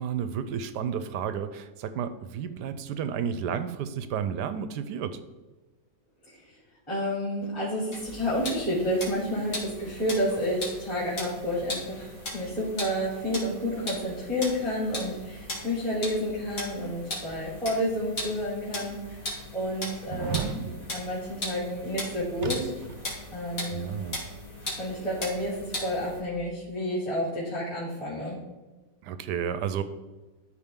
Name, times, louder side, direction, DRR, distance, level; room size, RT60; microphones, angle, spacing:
voice 1, 0.0-5.2 20.1-20.8 23.7-24.2 29.0-29.8, right 8 dB, 75° right, 11 dB, 1.1 m, -32 dB
voice 2, 6.3-6.6 6.9-19.0 19.5-22.7 23.3-23.9 24.8-25.6 25.8-28.4, equal, 15° left, -10 dB, 3.0 m, -30 dB
sound 1, 7.9-26.2, left 1 dB, 50° left, 2.5 m, -38 dB
sound 2, 18.1-18.2 18.9-19.0 20.0-20.6 22.4-23.1 23.4-23.5, right 7 dB, 55° right, 0.8 m, -34 dB
13.0 x 4.6 x 3.7 m, 1.2 s
omnidirectional pair, 2.0 m